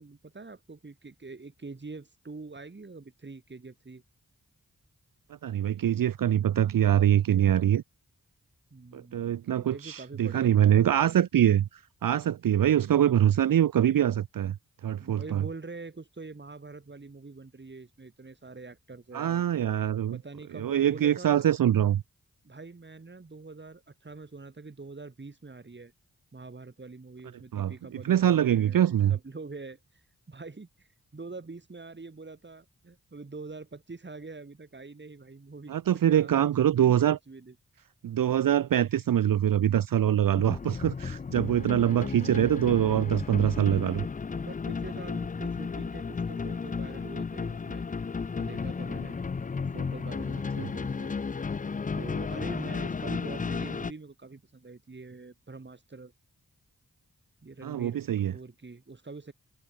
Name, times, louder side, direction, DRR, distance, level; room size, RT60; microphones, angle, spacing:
voice 1, 0.0-4.0 8.7-11.2 15.0-19.4 20.1-21.5 22.4-25.9 26.3-29.8 30.3-37.5 44.3-47.9 48.3-49.2 49.6-51.2 51.9-56.1 57.4-59.3, right 3 dB, 30° right, 1.4 m, -44 dB
voice 2, 5.4-7.8 8.9-14.6 14.8-15.4 19.1-20.2 20.5-22.0 27.5-27.7 28.0-29.2 35.7-37.2 38.0-44.0 50.6-50.7 57.6-58.3, right 10 dB, 70° right, 0.5 m, -24 dB
sound 1, 40.3-53.9, left 5 dB, 25° left, 0.4 m, -33 dB
cardioid pair, 45°, 35 cm